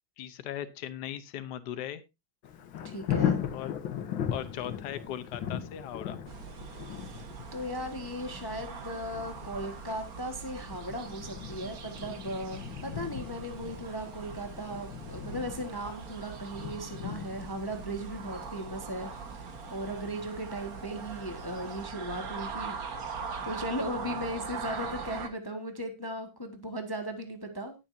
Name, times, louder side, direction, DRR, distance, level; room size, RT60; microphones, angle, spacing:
voice 1, 0.2-2.0 3.5-3.7 4.3-6.2 23.9-24.3, left 11 dB, 65° left, 11 dB, 1.5 m, -39 dB
Thunder, 2.4-21.2 21.7-21.8, left 9 dB, 85° left, 1.9 m, -38 dB
voice 2, 2.8-3.4 6.7-7.2 7.5-22.8 23.2-27.7, equal, 15° left, 5 dB, 1.3 m, -37 dB
sound 1, 6.3-25.3, right 5 dB, 50° right, 1.8 m, -41 dB
19.5 x 7.2 x 2.6 m, 0.23 s
omnidirectional pair, 2.1 m